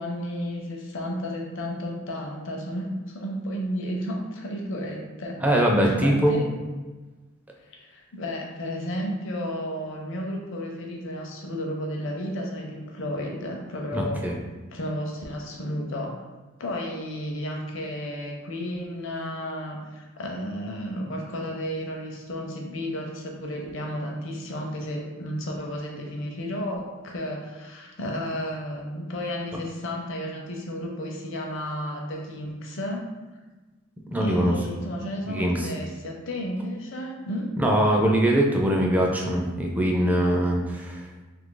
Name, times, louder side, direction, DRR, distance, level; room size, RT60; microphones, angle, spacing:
voice 1, 0.0-5.4 5.8-6.5 7.7-14.3 14.7-16.2 16.6-33.0 34.2-37.6, equal, 65° left, 1 dB, 0.6 m, -32 dB
voice 2, 5.4-6.4 13.9-14.3 34.1-34.5 35.3-35.7 37.6-41.0, right 1 dB, 10° right, -1 dB, 0.4 m, -22 dB
2.8 x 2.5 x 3.7 m, 1.2 s
head